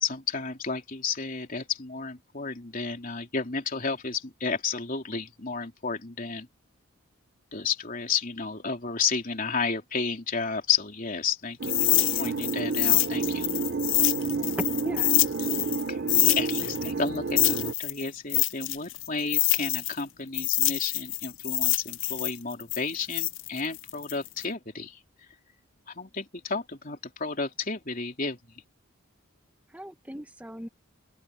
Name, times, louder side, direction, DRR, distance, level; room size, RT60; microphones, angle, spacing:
voice 1, 0.0-6.5 7.5-13.5 15.6-25.0 25.9-28.4, left 5 dB, 40° left, 3.5 m, -32 dB
sound 1, 11.6-15.8 16.1-20.0 20.3-24.4, left 18 dB, 60° left, 0.7 m, -26 dB
sound 2, 11.6-17.7, right 4 dB, 50° right, 0.6 m, -30 dB
voice 2, 12.1-12.5 14.8-15.2 29.7-30.7, equal, 5° right, 1.5 m, -40 dB
open air
head